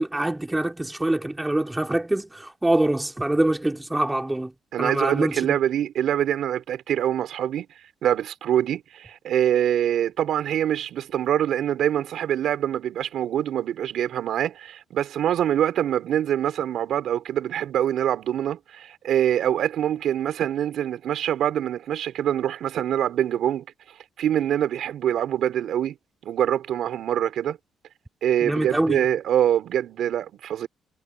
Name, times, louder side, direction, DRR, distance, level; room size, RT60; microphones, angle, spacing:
voice 1, 0.0-4.5 4.8-5.6 28.4-29.0, right 1 dB, 10° right, 3.9 m, -24 dB
voice 2, 4.7-7.7 8.0-23.6 24.2-26.0 26.2-27.6 28.2-30.7, right 10 dB, 75° right, 4.5 m, -24 dB
cardioid pair, 90°, 0 cm